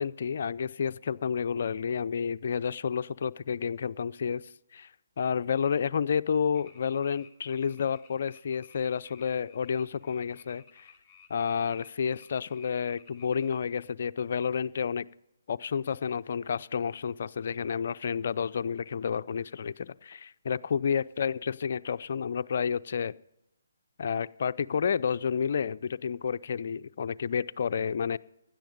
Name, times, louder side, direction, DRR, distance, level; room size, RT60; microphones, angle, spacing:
voice 1, 0.0-4.4 4.7-4.9 5.2-10.9 11.3-15.1 15.5-23.1 24.0-28.2, left 6 dB, 55° left, 13 dB, 0.5 m, -30 dB
sound 1, 6.5-13.6, left 6 dB, 15° left, 3.1 m, -56 dB
16.5 x 10.5 x 5.2 m, 0.90 s
figure-of-eight pair, 145°, 0 cm